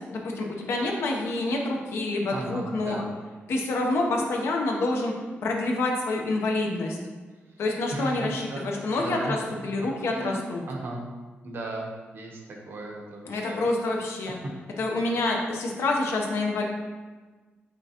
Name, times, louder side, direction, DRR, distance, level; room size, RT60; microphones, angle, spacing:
voice 1, 0.1-3.0 3.5-5.1 5.4-7.0 7.6-10.6 13.3-14.4 14.8-16.6, left 2 dB, 90° left, 0 dB, 0.7 m, -27 dB
voice 2, 2.3-3.1 7.9-9.4 10.1-10.4 10.7-11.0 11.4-13.6, right 2 dB, 60° right, -1 dB, 0.9 m, -36 dB
5.3 x 3.5 x 2.8 m, 1.3 s
wide cardioid pair, 120°, 4 cm